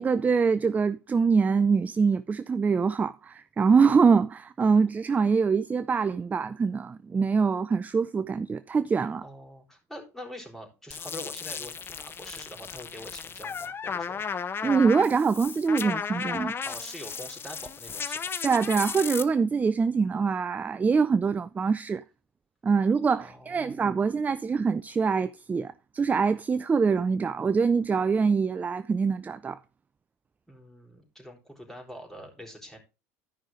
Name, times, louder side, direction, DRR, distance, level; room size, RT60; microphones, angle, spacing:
voice 1, 0.0-9.2 14.6-16.5 18.4-22.0 22.6-29.6, right 5 dB, 20° right, 0.4 m, -24 dB
voice 2, 9.2-14.2 16.6-18.2 23.2-23.8 30.5-32.8, equal, 5° left, 4.0 m, -44 dB
sound 1, 10.9-19.2, left 6 dB, 30° left, 0.7 m, -35 dB
13.0 x 5.5 x 3.7 m
hypercardioid pair, 80°, 8 cm